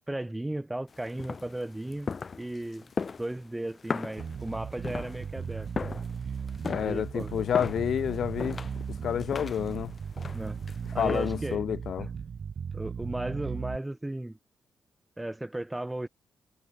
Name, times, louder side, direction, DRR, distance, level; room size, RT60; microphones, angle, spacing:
voice 1, 0.0-2.9 3.2-5.7 6.8-7.3 10.3-10.6 10.9-11.6 12.7-14.4 15.2-16.1, right 1 dB, 10° right, 1.0 m, -35 dB
sound 1, 0.9-11.6, left 5 dB, 40° left, 2.5 m, -39 dB
Bass guitar, 4.2-13.8, right 6 dB, 50° right, 0.7 m, -37 dB
voice 2, 6.7-8.6 9.0-9.9 11.0-12.1, left 9 dB, 70° left, 0.6 m, -29 dB
cardioid pair, 110°, 0 cm